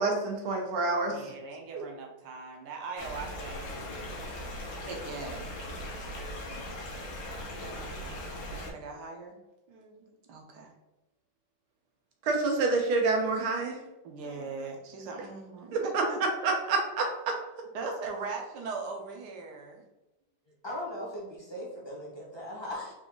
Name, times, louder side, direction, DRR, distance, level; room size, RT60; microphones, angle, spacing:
voice 1, 0.0-1.3 1.7-1.8 12.2-13.8 15.7-16.0 16.4-17.3, right 3 dB, 90° right, 1 dB, 1.7 m, -28 dB
voice 2, 1.1-4.2 4.4-5.5 6.5-7.2 7.5-9.4 9.7-10.7 14.0-16.2 17.7-19.8, right 4 dB, 65° right, 2 dB, 1.2 m, -41 dB
sound 1, 3.0-8.7, left 1 dB, 70° left, 1.6 m, -39 dB
voice 3, 20.6-22.9, left 1 dB, 20° left, -6 dB, 0.8 m, -38 dB
4.7 x 2.6 x 3.8 m, 0.96 s
omnidirectional pair, 2.2 m